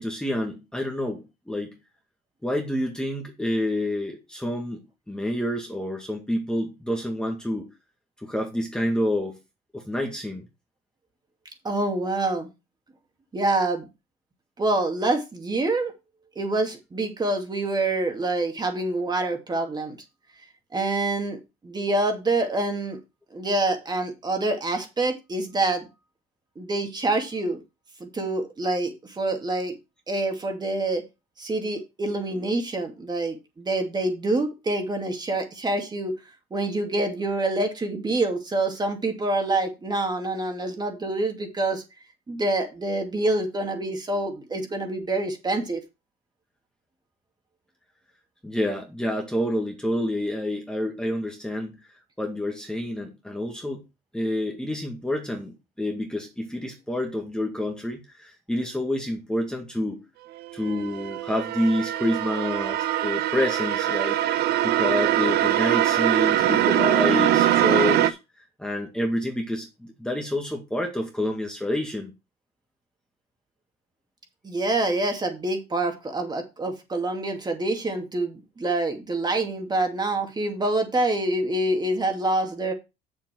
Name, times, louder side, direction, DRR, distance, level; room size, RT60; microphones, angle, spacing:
voice 1, 0.0-1.7 2.4-4.8 5.1-7.7 8.2-9.4 9.7-10.4 48.4-51.7 52.2-53.8 54.1-60.0 60.5-68.2 68.6-72.1, left 1 dB, 5° left, 2.0 m, -28 dB
voice 2, 11.6-12.5 13.3-13.9 14.6-15.9 16.4-20.0 20.7-23.0 23.3-25.9 26.6-27.6 28.0-29.7 30.1-31.0 31.4-36.1 36.5-41.8 42.3-45.8 74.4-82.7, right 2 dB, 25° right, 2.5 m, -26 dB
sound 1, 60.4-68.1, right 12 dB, 75° right, 0.9 m, -22 dB
7.4 x 7.3 x 4.6 m
cardioid pair, 110°, 17 cm